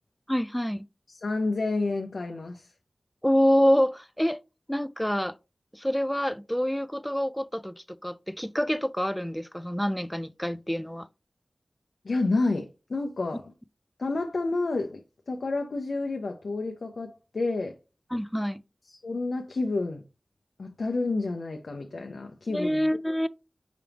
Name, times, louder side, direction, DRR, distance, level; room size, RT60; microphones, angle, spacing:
voice 1, 0.3-0.9 3.2-4.4 4.7-5.3 5.7-11.1 18.1-18.6 22.5-23.3, equal, 5° left, 0.3 m, -26 dB
voice 2, 1.1-2.7 12.0-13.5 14.0-15.0 15.3-17.8 18.9-20.0 20.6-22.9, left 3 dB, 80° left, 0.6 m, -29 dB
4.9 x 3.4 x 2.9 m
wide cardioid pair, 50°, 0 cm